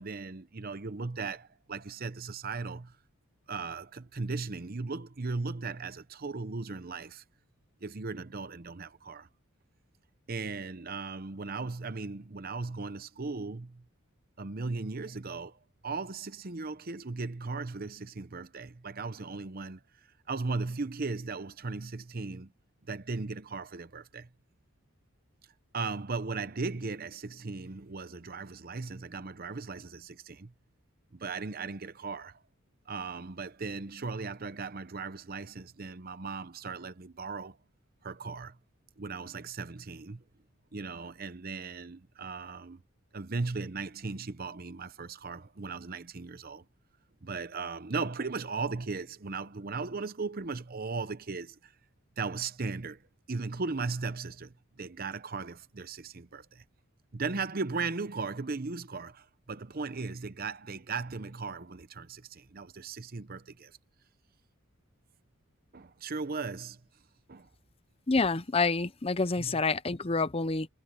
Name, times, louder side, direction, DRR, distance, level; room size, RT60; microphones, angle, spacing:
voice 1, 0.0-3.0 3.5-7.2 7.8-9.3 10.3-13.8 14.4-22.5 22.9-24.3 25.7-30.5 31.1-32.4 32.9-37.6 38.0-38.6 39.0-40.2 40.7-42.8 43.1-46.6 47.2-51.7 52.2-53.0 53.3-56.6 57.1-63.8 65.7-66.8 67.3-67.5 69.4-69.6, right 4 dB, 45° right, 0.8 m, -37 dB
voice 2, 68.1-70.7, left 3 dB, 25° left, 0.6 m, -28 dB
head